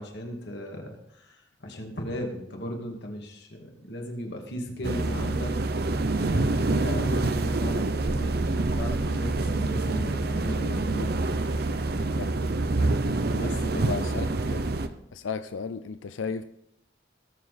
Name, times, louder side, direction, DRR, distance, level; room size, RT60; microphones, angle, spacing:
voice 1, 0.0-5.5 6.2-11.1 11.5-11.9 13.3-13.9, equal, 60° left, 1 dB, 2.3 m, -37 dB
sound 1, 4.8-14.9, right 2 dB, 50° right, 0.7 m, -26 dB
voice 2, 13.7-14.3 14.5-14.7 15.1-16.4, left 5 dB, 85° left, 11 dB, 0.5 m, -34 dB
19.5 x 7.1 x 4.2 m, 0.78 s
head